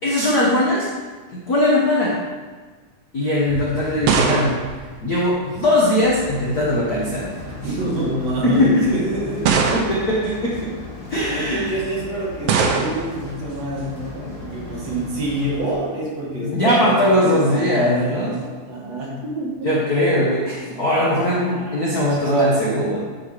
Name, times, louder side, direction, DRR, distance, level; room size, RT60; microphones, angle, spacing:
voice 1, 0.0-0.9 1.3-2.2 3.1-4.6 5.0-7.3 7.6-7.7 8.4-9.0 9.7-10.7 11.1-11.7 16.4-18.3 19.6-23.0, left 1 dB, 90° left, -6 dB, 0.8 m, -20 dB
sound 1, 3.5-5.8 6.8-7.3 8.1-8.2 9.4-10.3 12.5-13.2, right 5 dB, 80° right, 1.4 m, -22 dB
sound 2, 6.0-15.7, left 3 dB, 45° left, 2.0 m, -36 dB
voice 2, 7.5-9.7 11.3-19.7 21.1-23.0, right 1 dB, 55° right, -5 dB, 2.8 m, -28 dB
9.3 x 6.8 x 3.2 m, 1.4 s
omnidirectional pair, 3.6 m